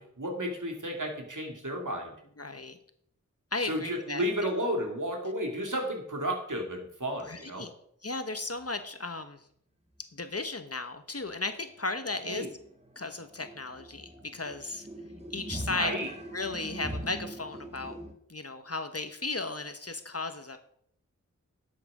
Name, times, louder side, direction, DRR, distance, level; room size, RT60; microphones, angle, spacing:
voice 1, 0.0-2.1 3.6-7.7 12.2-12.5 15.7-16.1, equal, 70° right, 2 dB, 2.7 m, -32 dB
voice 2, 2.4-2.8 3.5-4.2 7.2-7.7 8.0-9.4 10.1-12.5 13.0-14.9 15.3-15.9 16.3-17.9 18.3-20.6, left 3 dB, 50° left, 8 dB, 1.2 m, -35 dB
sound 1, 11.3-11.4 11.7-11.8 12.1-18.1, right 1 dB, 20° right, 1.8 m, -42 dB
11.5 x 7.8 x 5.0 m, 0.67 s
wide cardioid pair, 45°, 32 cm